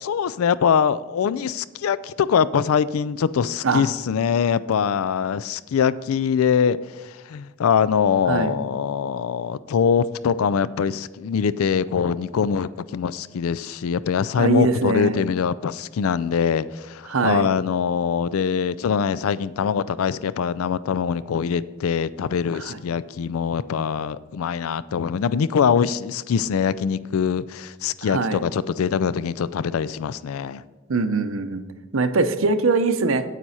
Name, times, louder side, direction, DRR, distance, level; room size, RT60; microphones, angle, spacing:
voice 1, 0.0-30.6, left 7 dB, 80° left, 18 dB, 0.4 m, -23 dB
voice 2, 14.4-15.2 17.1-17.5 22.5-22.8 28.0-28.4 30.9-31.6 31.9-33.2, right 3 dB, 70° right, 10 dB, 0.7 m, -22 dB
9.2 x 8.9 x 4.2 m, 1.2 s
head